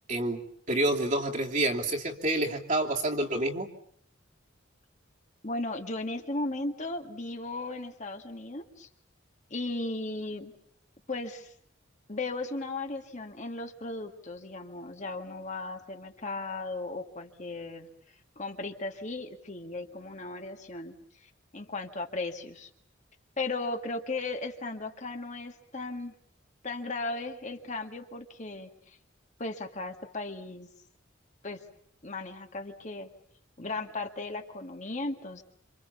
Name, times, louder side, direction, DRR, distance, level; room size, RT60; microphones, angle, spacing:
voice 1, 0.1-0.4 0.7-3.7, right 1 dB, 40° right, 0 dB, 2.9 m, -28 dB
voice 2, 5.4-8.9 9.5-10.5 11.1-11.5 12.1-17.9 18.4-20.9 21.2-22.7 23.4-26.1 26.6-29.0 29.4-30.7 31.4-31.6 32.0-33.1 33.6-35.4, left 2 dB, 40° left, 4 dB, 2.1 m, -36 dB
27.5 x 27.5 x 7.1 m, 0.62 s
head